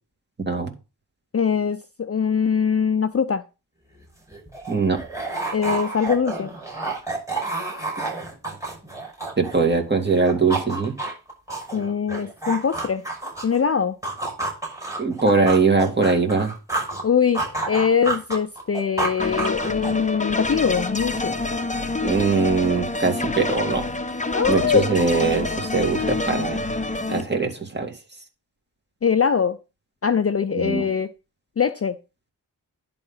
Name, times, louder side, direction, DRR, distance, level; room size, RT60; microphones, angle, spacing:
voice 1, 0.4-0.7 4.7-5.0 9.4-10.9 15.0-16.5 22.0-23.9 24.5-26.7 27.1-27.9 30.5-30.9, right 4 dB, 25° right, 2.3 m, -21 dB
voice 2, 1.3-3.4 5.5-6.5 11.7-13.0 13.4-14.0 17.0-21.4 24.3-24.9 29.0-29.6 30.0-31.1 31.6-32.0, left 6 dB, 35° left, 0.5 m, -22 dB
sound 1, 3.9-4.0 4.3-9.8 10.1-13.6 14.0-17.0 17.3-20.1, right 2 dB, 10° right, 5.8 m, -29 dB
sound 2, 19.2-27.2, left 2 dB, 20° left, 0.8 m, -27 dB
10.5 x 3.8 x 5.6 m
wide cardioid pair, 75°, 41 cm